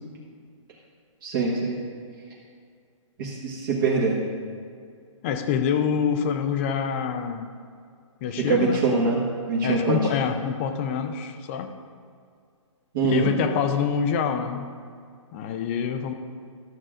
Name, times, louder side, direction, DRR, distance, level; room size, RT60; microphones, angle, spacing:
voice 1, 1.2-1.8 3.2-4.2 8.4-10.0 12.9-13.3, right 4 dB, 40° right, -4 dB, 1.3 m, -23 dB
voice 2, 5.2-7.5 8.2-8.8 9.6-11.8 13.0-14.7 15.3-16.1, left 7 dB, 25° left, 7 dB, 0.4 m, -26 dB
13.5 x 7.4 x 2.5 m, 2.2 s
hypercardioid pair, 155°, 17 cm